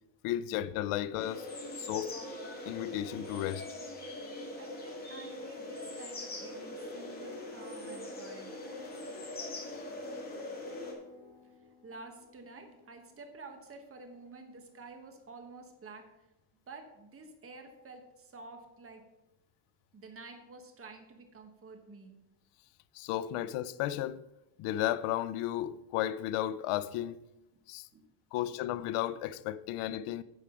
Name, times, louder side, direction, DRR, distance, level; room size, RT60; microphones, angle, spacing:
voice 1, 0.2-1.5 1.8-2.2 2.7-3.7 22.9-24.2 24.6-27.2 27.7-27.9 28.3-30.2, left 13 dB, 90° left, 0.6 m, -34 dB
sound 1, 1.2-10.9, left 2 dB, 20° left, 2.2 m, -42 dB
voice 2, 4.6-8.5 11.4-16.3 16.7-19.1 19.9-22.1 27.5-27.6 27.9-28.1 28.4-28.5 29.7-29.8, right 3 dB, 25° right, 1.3 m, -50 dB
sound 2, 6.8-14.3 14.8-14.9, left 3 dB, 70° left, 3.4 m, -57 dB
9.5 x 4.8 x 7.1 m
cardioid pair, 145°, 50 cm